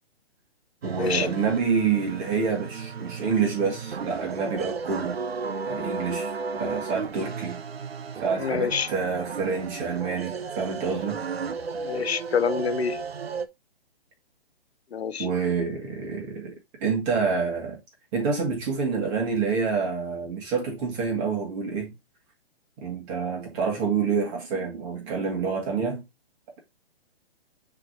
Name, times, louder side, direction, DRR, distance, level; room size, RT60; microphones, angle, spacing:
voice 1, 0.8-5.2 5.7-7.6 8.2-11.2 15.2-16.5 16.8-17.8 18.1-21.9 22.8-26.0, right 5 dB, 30° right, 2.1 m, -27 dB
sound 1, 0.8-13.5, right 5 dB, 75° right, 0.9 m, -34 dB
voice 2, 8.4-8.9 11.8-13.0 14.9-15.3, left 7 dB, 85° left, 0.6 m, -27 dB
10.5 x 3.5 x 2.8 m
figure-of-eight pair, 135°, 31 cm